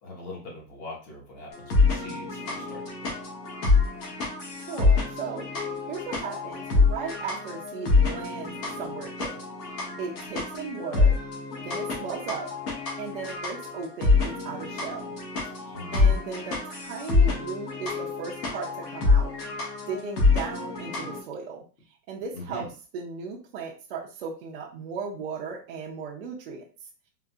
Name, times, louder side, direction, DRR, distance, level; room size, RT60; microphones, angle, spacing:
voice 1, 0.0-3.2 15.7-16.2 22.3-22.7, left 2 dB, 45° left, -2 dB, 1.3 m, -42 dB
sound 1, 1.5-21.2, left 4 dB, 70° left, 1.4 m, -26 dB
voice 2, 4.6-5.5 5.9-9.4 9.7-11.2 11.6-12.5 13.0-15.0 15.6-19.3 19.9-21.6 22.1-22.7 22.9-26.6, right 5 dB, 35° right, -3 dB, 0.5 m, -36 dB
3.8 x 2.5 x 2.3 m, 0.37 s
supercardioid pair, 155°, 50 cm